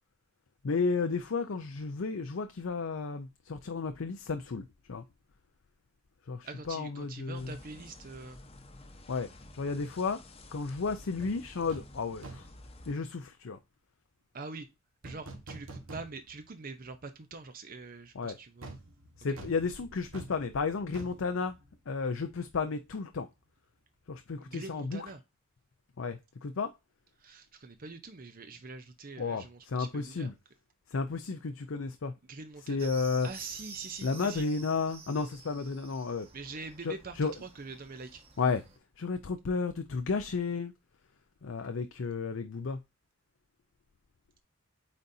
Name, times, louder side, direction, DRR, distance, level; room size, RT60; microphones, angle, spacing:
voice 1, 0.6-5.0 6.3-7.6 9.1-9.3 9.5-10.2 10.5-12.5 12.9-13.6 18.1-18.4 19.2-21.5 21.9-23.3 24.1-25.1 26.0-26.7 29.2-30.3 30.9-32.1 32.7-33.3 34.0-36.3 36.8-37.3 38.4-38.6 39.0-40.7 41.4-42.8, left 4 dB, 70° left, 0.5 m, -33 dB
voice 2, 6.4-8.4 14.3-14.7 15.0-18.8 24.4-25.2 27.2-30.3 32.3-32.9 33.2-34.5 36.3-38.2, right 4 dB, 40° right, 0.6 m, -44 dB
sound 1, 7.3-12.9, left 1 dB, 30° left, 0.9 m, -51 dB
sound 2, 11.2-11.4 11.7-12.0 12.2-12.6 15.0-16.5 16.8-16.9 18.6-22.3 22.5-22.7, right 2 dB, 75° right, 1.4 m, -47 dB
sound 3, 32.8-38.8, right 5 dB, 25° right, 1.4 m, -50 dB
8.6 x 4.1 x 2.7 m
head